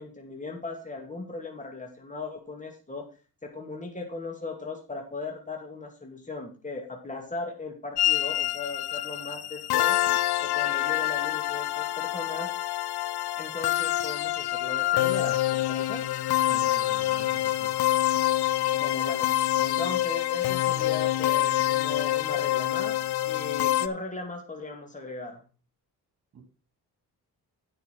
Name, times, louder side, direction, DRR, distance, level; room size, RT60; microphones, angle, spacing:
voice 1, 0.0-3.0 3.4-10.0 10.4-12.5 13.4-16.0 18.7-25.4, left 3 dB, 20° left, 2 dB, 2.6 m, -38 dB
sound 1, 8.0-23.9, left 15 dB, 90° left, 0.7 m, -26 dB
voice 2, 16.5-17.7 26.3-26.4, right 3 dB, 50° right, 4 dB, 3.2 m, -45 dB
9.7 x 6.2 x 5.9 m, 0.35 s
cardioid pair, 80°, 37 cm